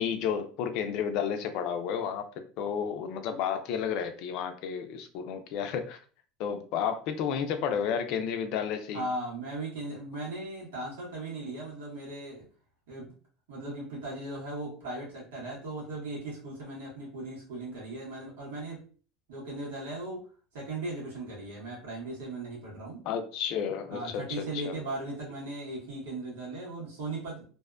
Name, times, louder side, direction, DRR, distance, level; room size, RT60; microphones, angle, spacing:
voice 1, 0.0-2.2 2.6-6.0 6.4-9.0 23.0-24.2 24.6-24.8, left 7 dB, 65° left, 7 dB, 0.4 m, -31 dB
voice 2, 8.9-12.5 12.9-13.1 13.5-18.8 19.3-20.2 20.5-23.0 23.9-27.4, right 2 dB, 85° right, -5 dB, 1.3 m, -38 dB
2.6 x 2.2 x 2.4 m, 0.41 s
supercardioid pair, 105°, 0 cm